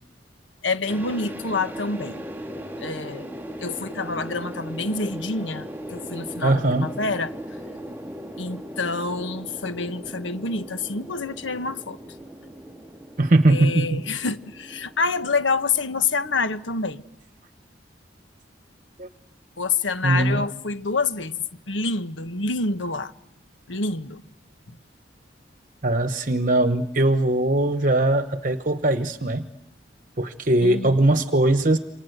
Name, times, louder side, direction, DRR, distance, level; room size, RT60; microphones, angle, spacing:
voice 1, 0.6-2.2 2.8-3.3 3.6-7.3 8.4-12.0 13.5-17.0 19.6-23.1 23.7-24.2 24.7-24.8 30.6-31.0, left 3 dB, 85° left, 1.4 m, -27 dB
sound 1, 0.9-17.0, right 1 dB, 10° right, 2.4 m, -38 dB
voice 2, 6.4-6.9 13.2-14.0 19.0-19.1 20.0-20.5 25.8-29.4 30.2-31.8, right 2 dB, 45° right, 1.1 m, -20 dB
28.5 x 25.5 x 8.0 m
head